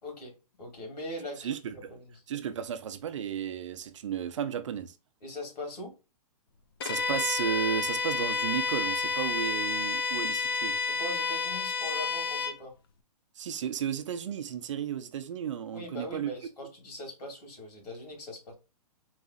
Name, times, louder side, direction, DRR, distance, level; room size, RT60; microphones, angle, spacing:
voice 1, 0.0-0.3 0.6-2.0 5.2-5.9 10.9-12.7 15.7-18.5, left 1 dB, 90° left, 2.4 m, -41 dB
voice 2, 1.4-1.9 2.3-4.9 6.8-10.8 13.4-16.3, right 8 dB, 50° right, 0.6 m, -33 dB
Bowed string instrument, 6.8-12.6, left 4 dB, 40° left, 0.4 m, -30 dB
4.0 x 2.4 x 4.0 m
hypercardioid pair, 170°, 20 cm